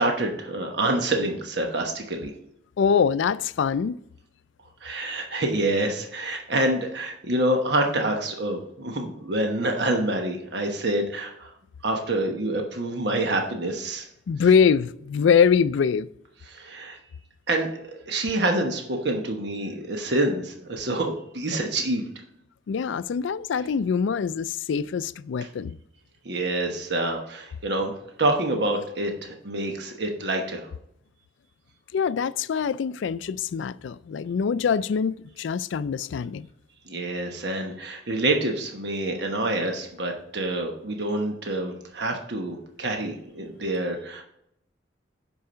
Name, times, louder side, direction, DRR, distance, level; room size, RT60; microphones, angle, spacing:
voice 1, 0.0-2.3 4.8-11.5 11.8-14.1 16.5-17.0 17.5-22.1 26.2-27.9 28.2-30.7 36.9-44.2, right 1 dB, 60° right, 1.1 m, -27 dB
voice 2, 2.8-4.0 14.3-16.1 22.7-25.8 31.9-36.5, left 6 dB, 75° left, 0.3 m, -23 dB
10.5 x 4.7 x 5.6 m
head